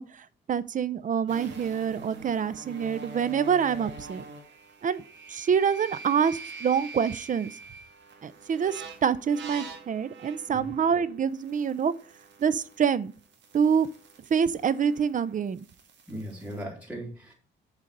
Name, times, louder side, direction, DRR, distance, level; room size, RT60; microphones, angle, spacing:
voice 1, 0.0-4.2 4.8-5.0 5.3-7.5 8.2-11.9 12.4-13.1 13.5-13.9 14.3-15.7, right 7 dB, 40° right, 0.6 m, -26 dB
sound 1, 1.3-12.9 13.1-16.6, right 3 dB, 65° right, 1.7 m, -45 dB
voice 2, 16.1-17.3, right 1 dB, 5° right, 3.1 m, -38 dB
7.2 x 4.1 x 6.5 m
cardioid pair, 90°, 20 cm